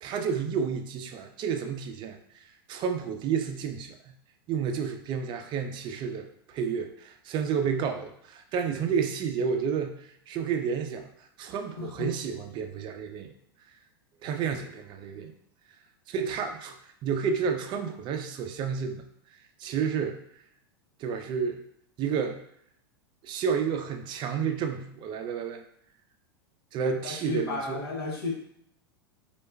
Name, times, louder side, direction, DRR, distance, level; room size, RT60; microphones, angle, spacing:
voice 1, 0.0-2.4 2.7-4.1 4.5-11.1 11.4-13.3 14.2-15.3 16.1-16.8 17.0-19.0 19.6-20.2 21.0-21.6 22.0-22.4 23.2-25.6 26.7-27.9, right 6 dB, 40° right, 6 dB, 0.4 m, -30 dB
voice 2, 11.8-12.1 14.2-14.5 27.0-28.3, left 3 dB, 80° left, -2 dB, 0.8 m, -34 dB
2.2 x 2.1 x 3.3 m, 0.70 s
hypercardioid pair, 100°, 13 cm